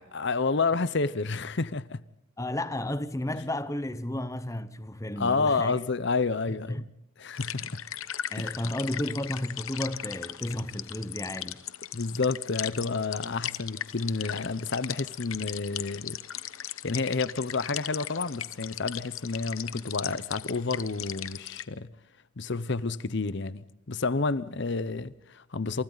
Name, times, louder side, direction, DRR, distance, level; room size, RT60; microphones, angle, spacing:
voice 1, 0.0-2.0 5.2-6.8 7.2-7.8 8.4-8.7 11.9-16.2 16.8-21.9 22.4-25.8, left 4 dB, 55° left, 0.8 m, -30 dB
voice 2, 2.4-5.8 6.7-6.9 7.6-7.7 8.3-11.6, left 1 dB, 15° left, 0.8 m, -33 dB
sound 1, 7.3-21.6, left 11 dB, 75° left, 1.1 m, -38 dB
29.0 x 27.5 x 4.0 m
head